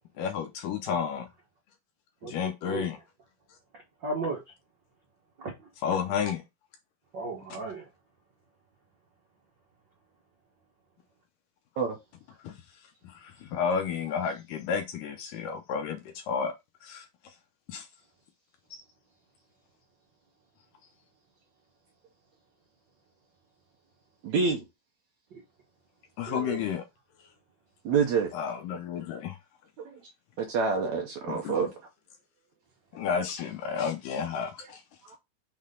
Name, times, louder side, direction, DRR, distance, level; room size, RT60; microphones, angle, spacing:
voice 1, 0.2-1.3 2.2-3.0 5.8-6.4 12.4-12.6 13.0-16.5 16.8-17.1 17.7-17.9 18.7-18.8 26.2-26.8 28.3-29.4 31.3-31.7 32.9-34.8, left 7 dB, 75° left, 2.1 m, -31 dB
voice 2, 2.2-2.9 4.0-4.4 5.4-5.5 7.1-7.8 25.3-25.4 26.3-26.6, right 3 dB, 85° right, 1.0 m, -35 dB
voice 3, 24.2-24.6 27.8-28.3 29.8-30.0 30.4-31.8 35.0-35.2, right 5 dB, 70° right, 1.8 m, -27 dB
6.5 x 3.9 x 3.7 m
omnidirectional pair, 4.4 m